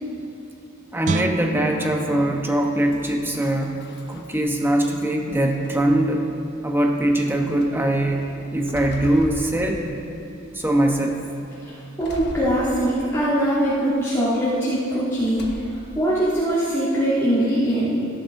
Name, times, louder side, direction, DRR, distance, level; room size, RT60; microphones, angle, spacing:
voice 1, 0.9-3.7 4.1-6.3 6.6-8.2 8.5-9.8 10.5-11.2, right 1 dB, 10° right, 1 dB, 1.0 m, -21 dB
Guitar, 1.0-4.2 4.6-4.8, right 5 dB, 35° right, 0.3 m, -32 dB
sound 1, 2.9-4.8 5.3-6.0 6.8-6.9 7.3-7.7 8.2-10.2 10.6-11.1 12.0-13.2 13.6-14.2 15.2-16.0, left 1 dB, 55° left, 1.2 m, -39 dB
voice 2, 11.6-18.0, right 1 dB, 15° left, -15 dB, 3.1 m, -22 dB
16.5 x 11.5 x 2.7 m, 2.7 s
head